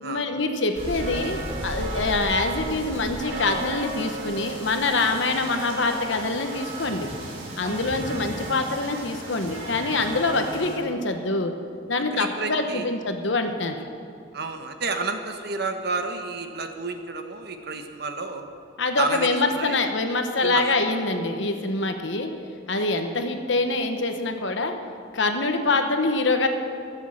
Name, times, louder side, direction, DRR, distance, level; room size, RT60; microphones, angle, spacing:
voice 1, 0.0-7.1 7.6-11.5 11.9-13.8 18.8-22.3 22.7-24.7 25.1-26.5, left 3 dB, 65° left, 6 dB, 1.1 m, -25 dB
sound 1, 0.7-10.8, right 1 dB, 80° right, 3.1 m, -34 dB
voice 2, 12.1-12.9 14.3-18.5 19.0-19.8 20.4-20.6 22.8-22.9, right 3 dB, 55° right, 6 dB, 1.0 m, -30 dB
14.0 x 8.1 x 7.6 m, 2.3 s
head